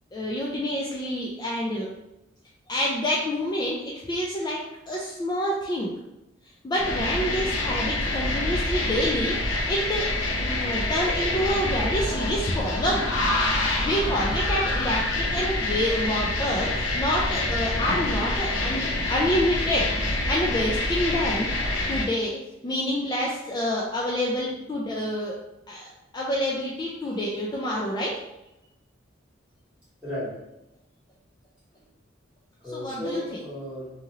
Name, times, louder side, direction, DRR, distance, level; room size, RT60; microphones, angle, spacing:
voice 1, 0.1-1.9 2.7-5.9 6.6-10.1 10.4-13.0 13.8-21.5 21.9-25.4 25.7-28.2 32.7-33.4, left 1 dB, 20° left, -4 dB, 0.3 m, -27 dB
sound 1, 6.8-22.0, left 2 dB, 80° left, 0.6 m, -26 dB
voice 2, 30.0-30.4 32.6-33.9, left 1 dB, 5° right, -10 dB, 1.5 m, -35 dB
2.9 x 2.7 x 2.4 m, 0.91 s
head